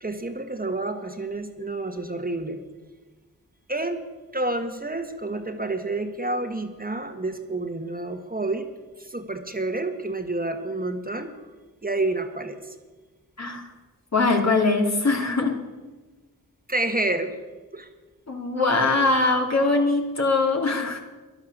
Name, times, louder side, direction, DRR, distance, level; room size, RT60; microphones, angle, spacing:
voice 1, 0.0-2.6 3.7-4.0 4.3-8.7 9.0-11.3 11.8-12.7 16.7-17.3 17.7-17.9, right 2 dB, 25° right, 5 dB, 1.6 m, -29 dB
voice 2, 14.1-15.6 18.3-21.0, left 3 dB, 45° left, 2 dB, 2.6 m, -22 dB
13.0 x 11.0 x 6.8 m, 1.3 s
cardioid pair, 45°, 37 cm